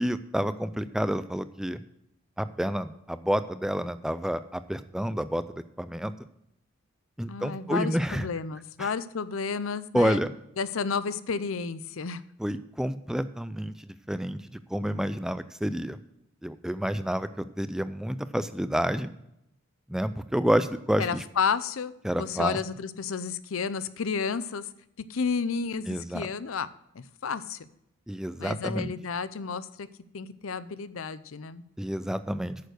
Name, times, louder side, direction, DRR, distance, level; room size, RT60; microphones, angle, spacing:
voice 1, 0.0-1.8 2.4-6.1 7.2-8.3 8.8-8.9 9.9-10.3 12.4-14.4 14.7-16.0 16.4-19.1 19.9-21.2 22.0-22.6 25.9-26.3 28.1-28.9 31.8-32.6, equal, 5° right, 12 dB, 0.4 m, -29 dB
voice 2, 7.3-10.2 10.6-12.2 21.0-24.6 25.1-26.7 26.9-27.7 28.4-29.9 30.1-31.6, left 5 dB, 85° left, 15 dB, 0.6 m, -31 dB
9.4 x 6.7 x 6.4 m, 0.79 s
head